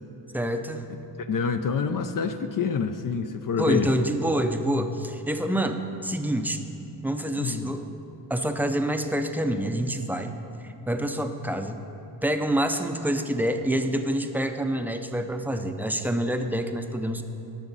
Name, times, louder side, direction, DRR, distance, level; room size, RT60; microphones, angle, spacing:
voice 1, 0.3-0.8 3.6-6.6 7.0-7.9 8.3-10.3 10.6-11.8 12.2-17.2, right 1 dB, 5° right, 6 dB, 0.5 m, -27 dB
voice 2, 1.3-3.9 7.4-7.7 10.7-10.8, left 6 dB, 50° left, 8 dB, 0.5 m, -27 dB
18.0 x 6.1 x 4.0 m, 2.9 s
cardioid pair, 110°, 44 cm